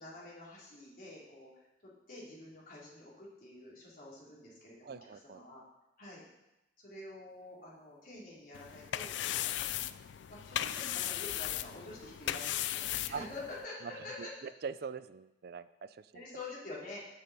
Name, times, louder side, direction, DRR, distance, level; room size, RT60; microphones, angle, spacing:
voice 1, 0.0-1.5 1.8-5.6 6.0-6.2 6.8-9.1 9.4-9.8 10.3-14.3 16.1-17.0, left 2 dB, 50° left, -5 dB, 3.1 m, -48 dB
voice 2, 4.8-5.4 13.1-13.3 13.8-13.9 14.2-16.2, right 6 dB, 55° right, 14 dB, 0.4 m, -43 dB
sound 1, 8.5-13.7, left 12 dB, 80° left, 0.4 m, -37 dB
15.5 x 5.6 x 4.1 m, 0.95 s
head